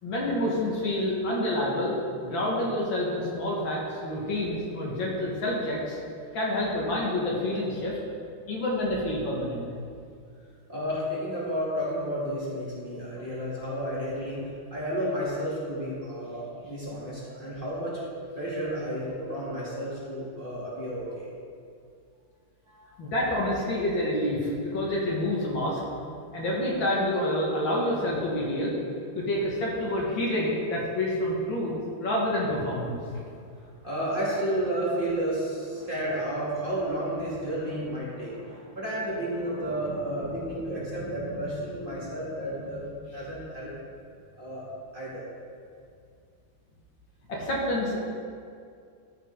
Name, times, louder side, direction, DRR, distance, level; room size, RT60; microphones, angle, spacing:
voice 1, 0.0-2.0 2.2-6.0 6.3-8.0 8.5-9.7 23.0-25.8 26.3-28.7 29.1-31.7 32.0-33.0 47.3-48.1, left 1 dB, 65° left, -4 dB, 2.2 m, -28 dB
voice 2, 10.7-18.0 18.3-21.2 22.7-22.9 31.7-31.8 33.5-42.9 43.1-43.7 44.4-44.6 44.9-45.2, equal, 25° right, -9 dB, 2.6 m, -32 dB
13.0 x 6.8 x 3.7 m, 2.3 s
omnidirectional pair, 2.3 m